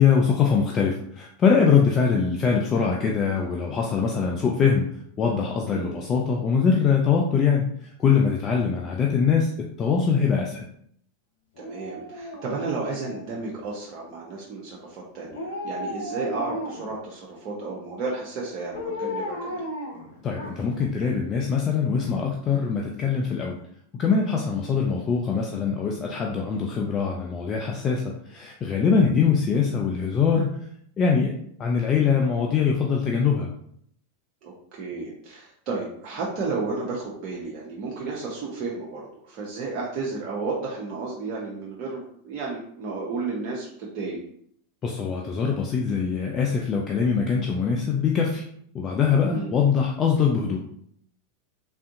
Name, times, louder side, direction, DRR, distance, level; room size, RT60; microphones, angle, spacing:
voice 1, 0.0-4.9 5.2-7.6 8.0-9.5 9.8-10.6 20.2-23.6 24.0-30.5 31.0-31.3 31.6-33.5 44.8-48.4 48.7-50.6, left 6 dB, 30° left, 0 dB, 0.4 m, -22 dB
Dog, 11.6-13.6 15.3-17.0 18.7-20.8 21.2-21.3, left 1 dB, 70° left, 0.7 m, -35 dB
voice 2, 11.6-19.6 29.0-29.2 34.4-44.2 49.3-49.5, right 3 dB, 45° right, -4 dB, 0.7 m, -32 dB
3.4 x 2.6 x 2.6 m, 0.67 s
hypercardioid pair, 90°, 0 cm